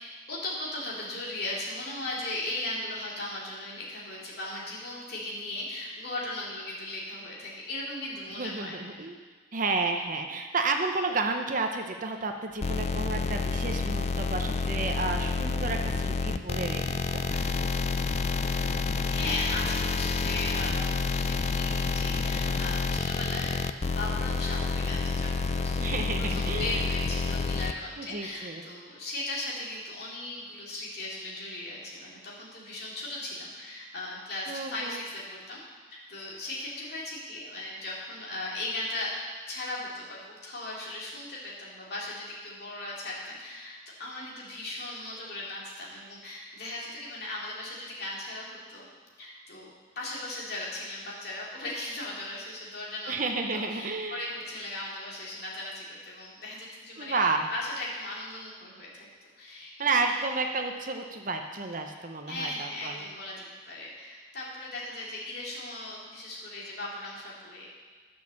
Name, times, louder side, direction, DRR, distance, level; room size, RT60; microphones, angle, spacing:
voice 1, 0.3-8.8 18.9-23.6 23.9-26.0 26.3-35.6 35.9-39.1 39.5-48.9 49.2-49.7 49.9-53.2 53.5-57.2 57.5-59.1 59.4-59.9 61.9-62.0 62.3-67.7, left 2 dB, 50° left, -5 dB, 2.9 m, -37 dB
voice 2, 8.4-9.2 9.5-17.4 25.8-26.8 28.0-28.6 34.5-35.0 53.1-54.3 57.0-57.5 59.8-63.0, right 3 dB, 40° right, 4 dB, 0.7 m, -31 dB
sound 1, 12.6-27.7, left 4 dB, 30° left, 0.3 m, -29 dB
11.5 x 6.4 x 7.0 m, 1.5 s
head